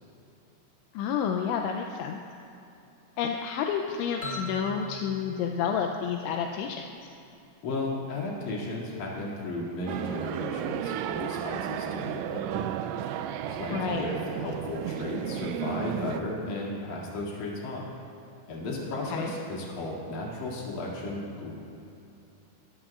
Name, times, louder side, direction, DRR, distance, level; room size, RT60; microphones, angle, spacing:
voice 1, 0.9-2.2 3.2-6.9 13.7-14.1 19.1-19.3, left 7 dB, 85° left, 3 dB, 2.7 m, -30 dB
sound 1, 4.2-6.9, left 2 dB, 30° left, 1.2 m, -41 dB
voice 2, 7.6-12.7 13.5-17.9 18.5-21.5, left 2 dB, 45° left, -5 dB, 3.2 m, -35 dB
sound 2, 9.9-16.2, right 9 dB, 90° right, 2.6 m, -33 dB
23.0 x 13.5 x 2.5 m, 2.8 s
omnidirectional pair, 5.9 m